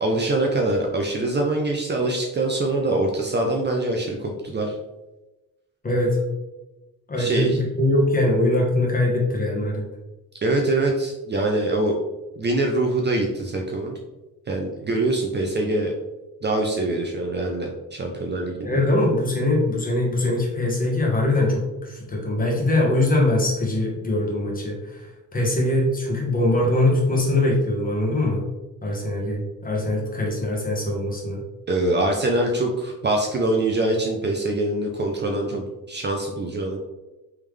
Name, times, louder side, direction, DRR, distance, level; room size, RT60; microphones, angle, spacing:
voice 1, 0.0-4.8 7.2-7.6 10.4-12.0 12.4-14.0 14.5-15.9 16.4-18.8 31.7-36.8, right 2 dB, 30° right, 1 dB, 0.6 m, -24 dB
voice 2, 5.8-6.2 7.1-9.8 18.6-28.4 28.8-31.4, left 1 dB, 25° left, -2 dB, 1.3 m, -22 dB
3.5 x 3.3 x 3.3 m, 1.1 s
cardioid pair, 95°, 36 cm